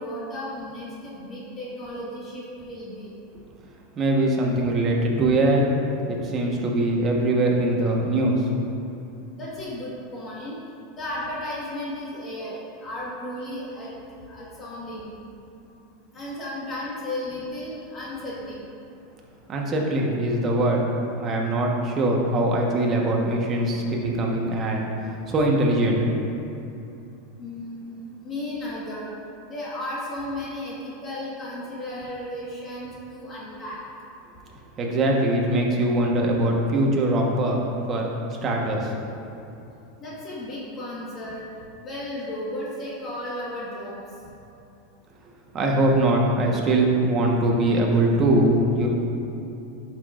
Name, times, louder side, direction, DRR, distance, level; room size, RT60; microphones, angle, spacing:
voice 1, 0.0-3.1 9.4-10.6 10.9-13.9 14.3-15.1 16.1-18.6 27.4-29.1 29.5-33.8 40.0-41.4 41.8-44.0, left 1 dB, 25° left, -6 dB, 1.5 m, -34 dB
voice 2, 4.0-5.7 6.1-8.4 19.5-20.9 21.2-24.9 25.3-26.0 34.8-37.6 37.9-38.9 45.5-48.9, right 1 dB, 30° right, -1 dB, 1.2 m, -22 dB
10.5 x 6.0 x 2.5 m, 2.8 s
supercardioid pair, 135°, 0 cm